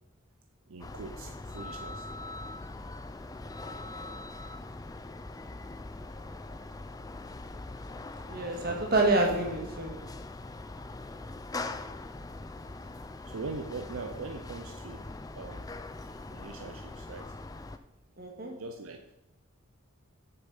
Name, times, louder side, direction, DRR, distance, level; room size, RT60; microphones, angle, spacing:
voice 1, 0.7-2.1 4.1-4.3 13.3-15.1 15.3-15.7 16.3-17.3 18.5-19.2, right 4 dB, 75° right, 5 dB, 0.6 m, -42 dB
sound 1, 0.8-17.8, left 2 dB, 15° left, 0.4 m, -42 dB
voice 2, 8.3-10.0 18.2-18.5, right 2 dB, 45° right, 1 dB, 1.9 m, -27 dB
7.1 x 6.8 x 5.5 m, 0.98 s
head